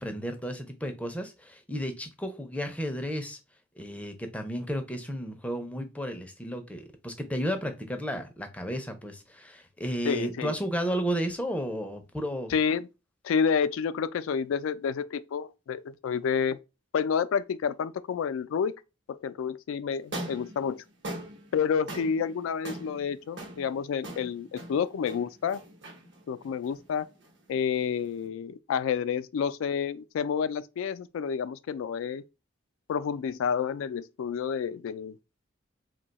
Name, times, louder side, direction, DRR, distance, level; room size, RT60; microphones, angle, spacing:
voice 1, 0.0-3.4 3.8-12.5, equal, 5° left, 0.4 m, -33 dB
voice 2, 10.0-10.6 12.5-12.9 13.2-16.6 16.9-18.7 19.1-20.8 21.5-25.6 26.3-27.1 27.5-32.2 32.9-35.1, left 6 dB, 85° left, 0.3 m, -29 dB
sound 1, 20.0-28.3, right 1 dB, 65° right, 0.9 m, -43 dB
2.7 x 2.2 x 3.9 m
head